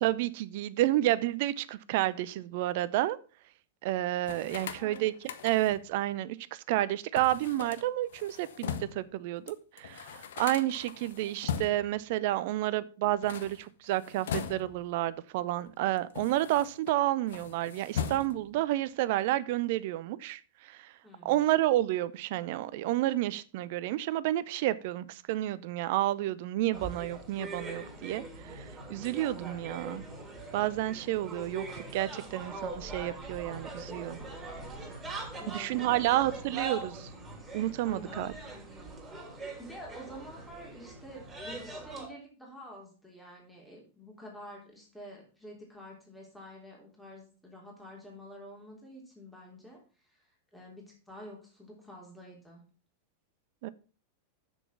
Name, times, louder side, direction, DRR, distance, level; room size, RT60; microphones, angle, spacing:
voice 1, 0.0-3.2 3.8-5.1 5.4-20.9 21.2-30.0 30.5-34.2 35.5-37.1 37.5-38.3 53.6-53.7, right 15 dB, 50° right, 17 dB, 0.6 m, -30 dB
sound 1, 4.2-5.9 7.1-9.1 9.5-9.6 9.8-12.0 13.1-14.9 15.7-16.9 17.3-18.6, left 8 dB, 60° left, 0.8 m, -39 dB
voice 2, 4.6-5.1 21.0-21.5 35.4-36.1 37.8-38.3 39.6-49.8 50.1-50.2 50.5-52.6, equal, 5° left, -2 dB, 3.4 m, -48 dB
sound 2, 26.7-42.1, right 2 dB, 10° right, 3.9 m, -42 dB
7.3 x 6.9 x 5.8 m, 0.36 s
figure-of-eight pair, 90°, 0 cm